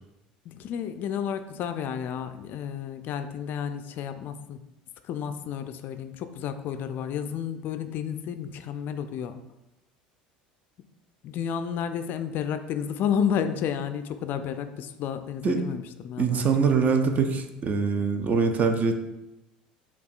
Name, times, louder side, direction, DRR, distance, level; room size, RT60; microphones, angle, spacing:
voice 1, 0.5-4.6 5.0-9.4 11.2-16.7, left 8 dB, 50° left, 9 dB, 0.3 m, -31 dB
voice 2, 16.2-19.1, right 5 dB, 35° right, 6 dB, 0.5 m, -24 dB
6.8 x 2.3 x 2.4 m, 0.94 s
hypercardioid pair, 70°, 4 cm